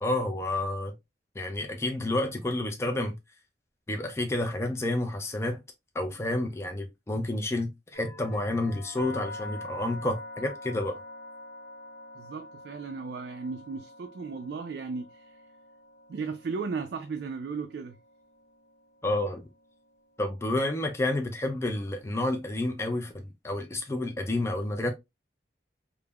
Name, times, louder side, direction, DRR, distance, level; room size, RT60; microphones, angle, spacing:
voice 1, 0.0-0.9 1.4-3.2 3.9-5.6 5.9-11.0 19.0-19.5 20.2-24.9, left 1 dB, 15° left, 0.3 m, -30 dB
sound 1, 7.9-21.8, left 2 dB, 65° left, 0.9 m, -46 dB
voice 2, 12.1-15.4 16.1-18.0, right 5 dB, 70° right, 0.3 m, -35 dB
3.4 x 2.0 x 2.2 m
head